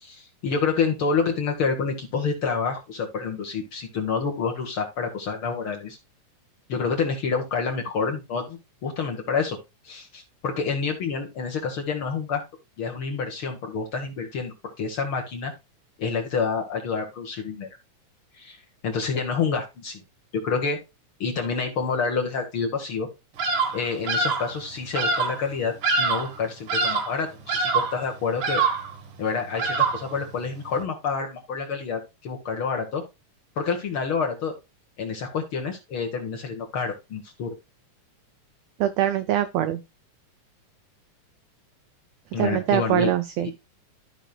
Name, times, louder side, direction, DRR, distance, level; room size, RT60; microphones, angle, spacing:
voice 1, 0.0-6.0 6.7-9.6 9.8-12.4 12.8-15.5 16.0-17.7 18.4-18.6 18.8-20.0 20.4-20.8 21.2-23.1 23.7-28.6 29.2-33.0 33.6-34.5 35.0-37.5 42.3-43.1 43.4-43.6, left 5 dB, 55° left, 1.6 m, -28 dB
Bird vocalization bird call bird song, 23.4-23.8 24.1-24.5 24.9-25.4 25.8-26.4 26.7-27.2 27.5-28.0 28.4-28.9 29.6-30.1, right 4 dB, 55° right, 1.6 m, -24 dB
voice 2, 38.8-39.8 42.4-43.5, right 11 dB, 90° right, 1.5 m, -23 dB
14.0 x 5.1 x 2.2 m
omnidirectional pair, 3.6 m